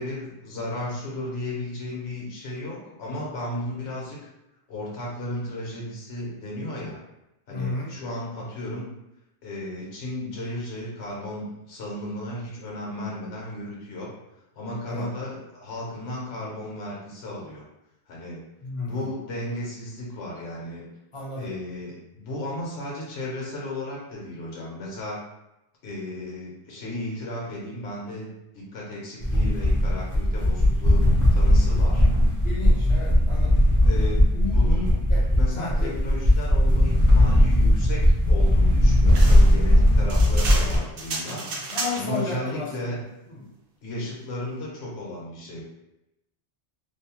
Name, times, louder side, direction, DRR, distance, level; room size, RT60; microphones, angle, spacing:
voice 1, 0.0-4.2 4.7-7.0 7.5-8.9 9.4-14.1 14.5-17.6 18.1-18.4 18.8-20.8 21.4-25.2 25.8-28.3 28.5-32.1 33.8-34.9 35.3-43.0 43.8-45.6, left 1 dB, 70° left, -4 dB, 1.1 m, -34 dB
voice 2, 7.5-7.9 12.8-13.1 14.9-15.1 18.6-19.1 21.1-21.5 32.0-32.2 32.4-33.6 34.3-34.6 35.1-35.2 35.5-36.0 41.4-42.9 43.3-43.5, left 3 dB, 40° left, -4 dB, 0.5 m, -33 dB
sound 1, 29.2-40.8, left 1 dB, 25° right, 0.4 m, -18 dB
sound 2, 39.1-42.2, right 2 dB, 65° right, 0.7 m, -33 dB
2.7 x 2.0 x 2.9 m, 0.90 s
omnidirectional pair, 1.1 m